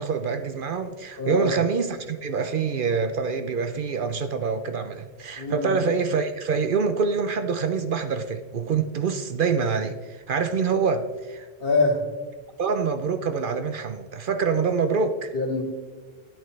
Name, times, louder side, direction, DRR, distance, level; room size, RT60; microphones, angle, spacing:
voice 1, 0.0-11.5 12.6-15.3, right 5 dB, 60° right, 0.7 m, -26 dB
voice 2, 1.2-1.6 5.4-5.8 11.6-12.0 15.3-15.6, left 3 dB, 60° left, 2.1 m, -24 dB
12.5 x 10.5 x 3.2 m
omnidirectional pair, 1.1 m